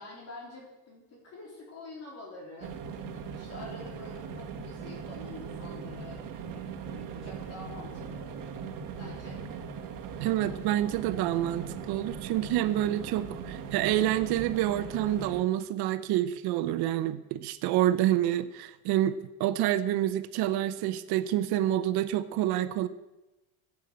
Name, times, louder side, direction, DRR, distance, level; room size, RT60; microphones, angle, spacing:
voice 1, 0.0-8.5 9.0-9.4, left 2 dB, 40° left, -2 dB, 3.5 m, -47 dB
sound 1, 2.6-15.4, right 6 dB, 60° right, 2.0 m, -40 dB
voice 2, 10.2-22.9, right 13 dB, 80° right, 12 dB, 1.0 m, -28 dB
15.0 x 8.4 x 7.9 m, 1.0 s
cardioid pair, 165°, 37 cm